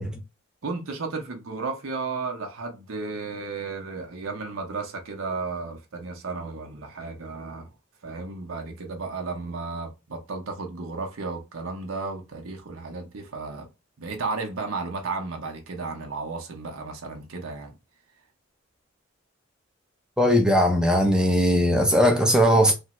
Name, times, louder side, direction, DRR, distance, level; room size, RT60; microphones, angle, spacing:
voice 1, 0.6-7.7 8.0-13.7 14.0-17.7, right 4 dB, 80° right, 0.7 m, -33 dB
voice 2, 20.2-22.7, equal, 5° right, 0.5 m, -19 dB
3.3 x 2.1 x 2.8 m
head